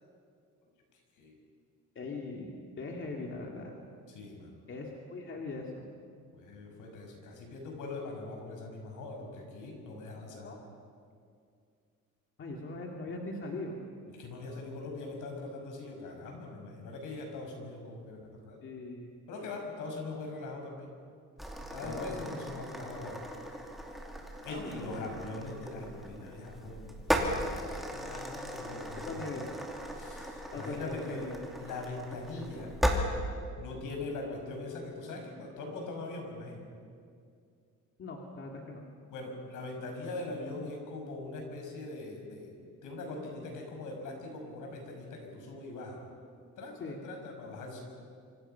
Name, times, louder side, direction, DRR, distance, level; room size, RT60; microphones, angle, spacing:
voice 1, 2.0-3.7 4.7-5.9 10.1-10.6 12.4-13.8 18.6-19.1 21.8-22.4 24.5-25.1 29.1-29.5 30.5-31.4 38.0-38.8 46.8-47.0, left 3 dB, 40° left, 0 dB, 2.3 m, -40 dB
voice 2, 4.1-4.5 6.3-10.5 14.2-18.6 19.3-20.9 21.7-23.2 24.4-29.4 29.9-31.3 31.6-32.7 33.6-36.6 39.1-46.0 46.6-47.8, left 2 dB, 75° left, 2 dB, 6.2 m, -42 dB
sound 1, 21.4-33.0, equal, ahead, 2.5 m, -37 dB
26.5 x 26.0 x 5.8 m, 2.3 s
cardioid pair, 155°, 31 cm